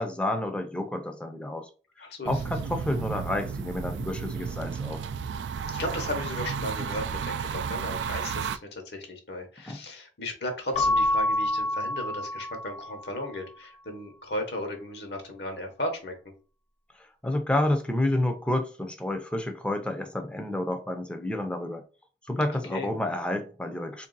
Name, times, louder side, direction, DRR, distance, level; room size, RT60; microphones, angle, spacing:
voice 1, 0.0-1.7 2.3-5.1 9.7-9.8 17.2-21.8 22.3-24.1, left 1 dB, 5° left, 0.5 m, -29 dB
voice 2, 2.0-2.4 5.7-16.2 22.5-22.9, left 1 dB, 70° left, 1.0 m, -35 dB
sound 1, 2.3-8.6, right 6 dB, 80° right, 0.3 m, -33 dB
Keyboard (musical) / Bell, 10.7-13.2, left 1 dB, 40° left, 0.7 m, -27 dB
3.3 x 2.7 x 3.9 m
head